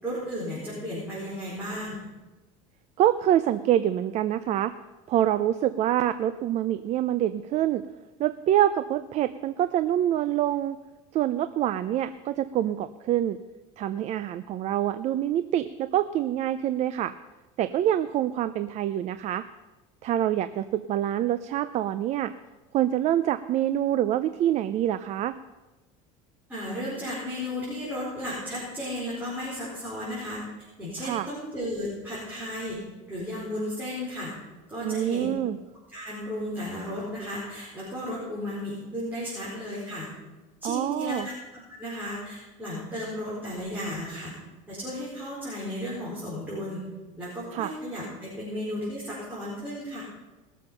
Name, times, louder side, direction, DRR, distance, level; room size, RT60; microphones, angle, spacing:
voice 1, 0.0-2.0 26.5-30.4 30.8-32.8 33.1-34.3 34.7-35.4 35.9-40.1 40.6-44.3 44.7-46.8 47.2-50.0, equal, 10° right, -8 dB, 4.8 m, -34 dB
voice 2, 3.0-4.7 5.1-7.8 8.2-10.8 11.1-13.4 13.8-17.1 17.6-19.4 20.0-22.3 22.7-25.4 31.0-31.3 34.8-35.6 40.6-41.3 47.5-47.7, right 12 dB, 45° right, 12 dB, 0.5 m, -26 dB
20.0 x 7.2 x 5.7 m, 1.1 s
cardioid pair, 130°, 17 cm